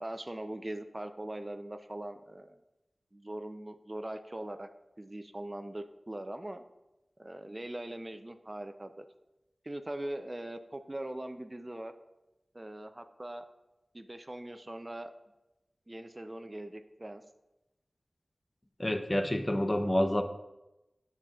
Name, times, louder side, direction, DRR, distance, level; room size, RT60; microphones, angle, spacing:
voice 1, 0.0-2.6 3.1-4.7 5.0-6.6 7.2-9.0 9.6-11.9 12.5-13.5 13.9-15.1 15.9-17.2, right 1 dB, 30° right, 7 dB, 0.5 m, -41 dB
voice 2, 18.8-20.2, left 1 dB, 25° left, 6 dB, 0.7 m, -28 dB
9.1 x 7.2 x 2.4 m, 0.96 s
cardioid pair, 40°, 0 cm